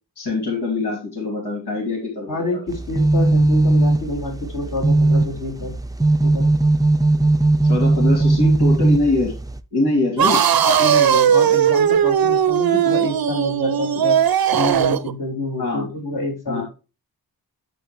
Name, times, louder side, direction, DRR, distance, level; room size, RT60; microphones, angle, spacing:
voice 1, 0.2-2.6 7.6-9.3 9.7-10.4 15.6-15.8 16.5-16.6, left 2 dB, 85° left, -2 dB, 3.0 m, -23 dB
voice 2, 2.3-5.7 6.2-6.5 10.3-14.2 14.5-16.6, left 1 dB, 55° left, -1 dB, 3.2 m, -27 dB
sound 1, 2.7-9.6, right 2 dB, 10° right, 0.5 m, -18 dB
sound 2, 10.2-15.1, right 9 dB, 70° right, 0.6 m, -17 dB
12.0 x 4.3 x 3.2 m, 0.31 s
wide cardioid pair, 110°, 38 cm